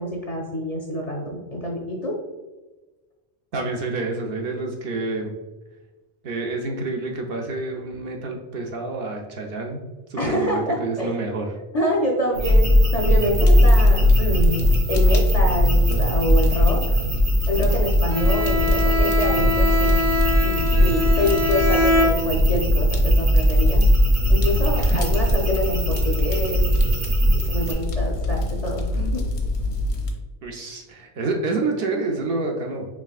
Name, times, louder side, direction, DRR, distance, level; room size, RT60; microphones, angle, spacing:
voice 1, 0.0-2.2 10.2-11.2 11.7-17.0 17.5-20.0 20.4-23.8 24.3-26.7 27.3-29.4, equal, 45° left, 0 dB, 0.5 m, -26 dB
voice 2, 3.5-5.3 6.2-9.8 10.1-11.6 24.8-25.0 30.4-32.9, right 3 dB, 65° right, 2 dB, 0.7 m, -28 dB
sound 1, 12.3-27.7, equal, 85° right, 1.3 m, -19 dB
Fire, 13.3-30.1, left 2 dB, 85° left, 1.0 m, -26 dB
Bowed string instrument, 18.1-22.7, left 1 dB, 25° right, 0.3 m, -23 dB
4.8 x 3.3 x 2.3 m, 1.2 s
omnidirectional pair, 1.1 m